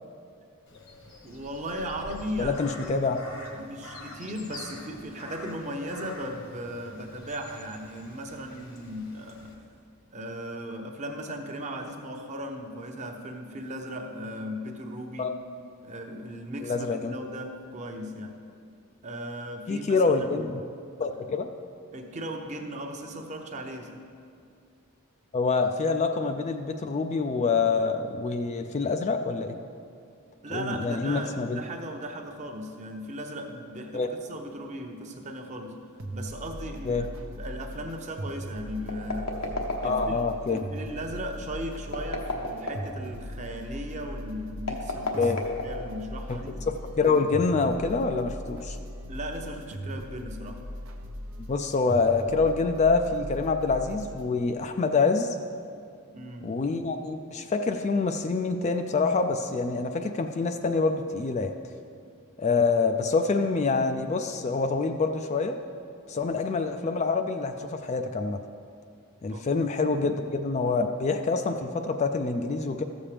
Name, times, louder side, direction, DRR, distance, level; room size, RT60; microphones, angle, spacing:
Crow, 0.7-9.5, left 1 dB, 65° left, 1.3 m, -45 dB
voice 1, 1.2-2.8 3.5-9.6 10.1-15.3 15.8-18.4 19.0-20.5 21.9-24.0 30.4-35.8 36.1-37.1 37.4-39.3 39.8-45.3 45.6-46.6 49.1-50.6 56.1-56.5 69.3-69.5 70.0-70.2, equal, 35° right, 3 dB, 0.8 m, -37 dB
voice 2, 2.4-3.2 15.2-15.3 16.6-17.1 19.7-20.5 21.0-21.5 25.3-29.5 30.5-31.6 33.9-34.1 36.8-37.1 39.8-40.6 45.2-45.4 46.3-46.4 47.0-48.8 51.4-55.4 56.4-61.5 62.4-65.6 66.1-68.4 69.2-72.8, left 4 dB, 30° left, 6 dB, 0.3 m, -26 dB
sound 1, 36.0-54.3, equal, 70° right, 0.7 m, -39 dB
sound 2, 38.9-40.3 41.8-43.0 44.6-46.1, left 2 dB, 85° left, 1.1 m, -32 dB
14.0 x 7.2 x 3.3 m, 2.4 s
head